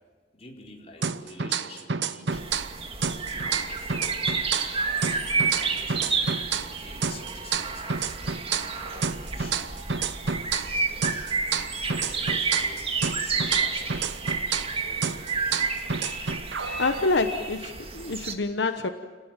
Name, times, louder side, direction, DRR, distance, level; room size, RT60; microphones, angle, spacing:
voice 1, 0.3-2.4 3.0-4.7 5.0-8.3 8.8-10.2 10.8-12.9 13.2-14.0 14.8-15.3, left 2 dB, 35° left, 0 dB, 4.5 m, -48 dB
sound 1, 1.0-2.8 3.0-6.8 7.0-10.8 11.0-14.8 15.0-17.0, right 6 dB, 75° right, 0.9 m, -30 dB
sound 2, 2.3-18.3, right 4 dB, 35° right, 1.9 m, -30 dB
voice 2, 16.8-18.9, left 3 dB, 85° left, 8 dB, 1.1 m, -26 dB
29.5 x 19.0 x 9.1 m, 1.5 s
head